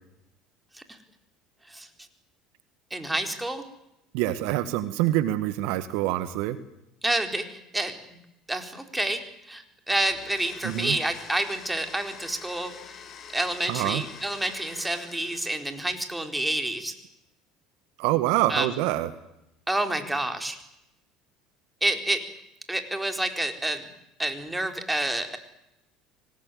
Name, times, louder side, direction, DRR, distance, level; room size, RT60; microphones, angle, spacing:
voice 1, 2.9-3.6 7.0-8.0 8.5-13.0 13.3-16.9 18.5-18.7 19.7-20.6 21.8-22.3 22.7-23.9 24.2-25.4, right 1 dB, 10° right, 6 dB, 4.4 m, -29 dB
voice 2, 4.1-6.6 10.6-11.0 13.7-14.0 18.0-19.1, right 15 dB, 70° right, 13 dB, 1.6 m, -25 dB
Domestic sounds home sounds, 10.1-15.9, left 7 dB, 45° left, 5.2 m, -46 dB
25.5 x 19.0 x 9.5 m, 0.85 s
hypercardioid pair, 80°, 0 cm